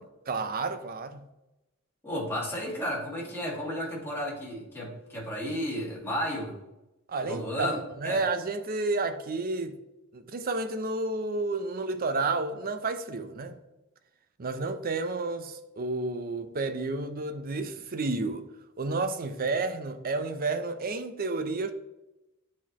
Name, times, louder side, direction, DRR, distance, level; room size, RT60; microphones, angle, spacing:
voice 1, 0.3-1.3 7.1-9.8 10.1-13.6 14.4-18.5 18.8-21.7, right 3 dB, 45° right, 0.6 m, -31 dB
voice 2, 2.0-6.5 7.2-8.2, equal, 10° left, 2.0 m, -33 dB
9.4 x 4.2 x 3.0 m
head